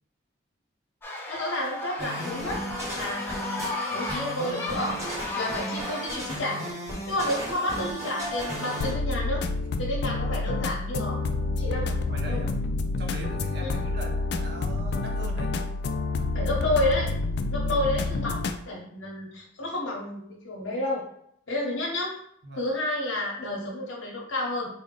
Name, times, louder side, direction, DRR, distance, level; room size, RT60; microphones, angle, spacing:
sound 1, 1.0-6.1, left 2 dB, 10° left, 0.6 m, -35 dB
voice 1, 1.3-2.6 2.9-3.5 3.9-5.1 5.4-6.6 7.1-9.4 9.8-11.2 11.6-12.4 13.6-13.7 16.3-17.1 17.5-18.4 18.7-21.0 21.5-22.1 22.6-24.7, left 1 dB, 85° left, -3 dB, 0.8 m, -30 dB
sound 2, 2.0-8.9, equal, 15° right, 1.0 m, -34 dB
sound 3, 8.8-18.6, left 3 dB, 55° left, 0.3 m, -28 dB
voice 2, 12.1-12.6 13.0-15.5 17.5-18.0 22.4-22.7, right 2 dB, 55° right, 0 dB, 0.7 m, -40 dB
3.8 x 2.1 x 3.8 m, 0.70 s
head